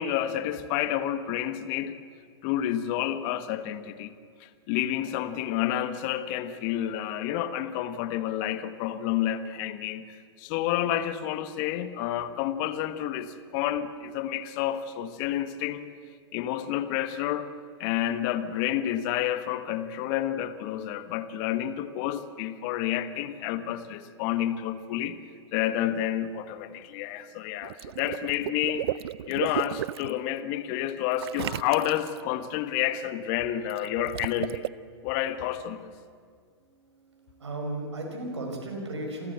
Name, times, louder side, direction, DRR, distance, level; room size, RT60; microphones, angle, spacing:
voice 1, 0.0-2.0 2.4-4.1 4.4-10.1 10.4-15.8 16.3-17.5 17.8-25.2 25.5-28.9 29.3-34.6 35.0-35.9, left 11 dB, 45° left, 12 dB, 1.4 m, -29 dB
Water / Liquid, 27.6-30.1 31.2-32.2 33.7-34.7, right 13 dB, 65° right, 0.5 m, -33 dB
voice 2, 36.5-39.3, right 2 dB, 85° right, 2 dB, 5.3 m, -36 dB
27.5 x 14.0 x 8.2 m, 2.1 s
hypercardioid pair, 105°, 14 cm